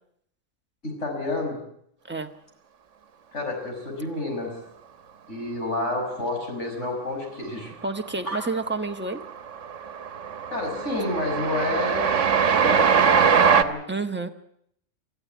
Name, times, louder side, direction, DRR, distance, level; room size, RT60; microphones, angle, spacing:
voice 1, 0.8-1.6 3.3-4.5 5.3-7.7 8.2-8.4 10.5-12.1 12.6-13.8, left 2 dB, 70° left, 1 dB, 6.4 m, -29 dB
voice 2, 7.8-9.2 13.9-14.3, right 3 dB, 10° right, 5 dB, 1.3 m, -29 dB
Train, 7.9-8.4 8.7-13.6, right 6 dB, 75° right, 1.5 m, -22 dB
24.0 x 14.5 x 9.3 m, 0.70 s
omnidirectional pair, 1.3 m